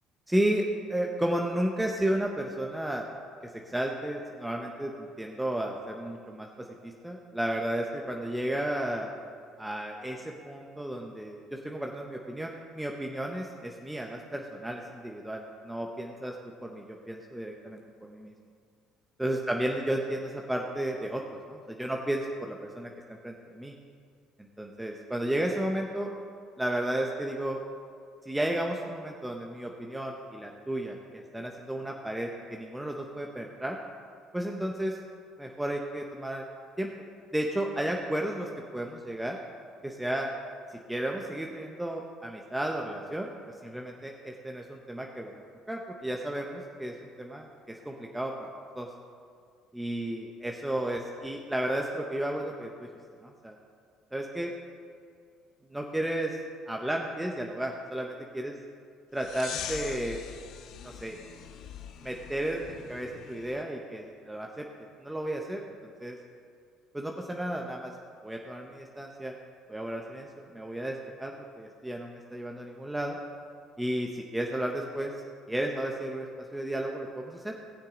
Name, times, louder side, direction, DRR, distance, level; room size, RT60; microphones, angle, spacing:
voice 1, 0.3-3.0 3.7-9.1 9.6-16.3 16.6-18.3 19.2-21.2 21.5-22.9 23.2-23.7 24.4-26.1 26.6-27.6 28.3-33.8 34.3-35.0 35.4-36.5 36.8-36.9 37.3-39.4 39.8-40.3 40.9-43.3 43.6-45.4 45.7-48.9 49.7-52.9 53.2-53.6 54.1-54.5 55.7-56.4 56.7-58.5 59.1-60.2 60.8-61.2 62.0-64.6 65.0-66.2 66.9-67.9 68.2-69.4 69.7-73.2 73.8-75.1 75.5-77.5, right 1 dB, 10° right, 1 dB, 1.0 m, -33 dB
sound 1, 59.2-63.6, left 9 dB, 65° left, 0.7 m, -42 dB
18.5 x 6.5 x 3.9 m, 2.2 s
supercardioid pair, 70°, 0 cm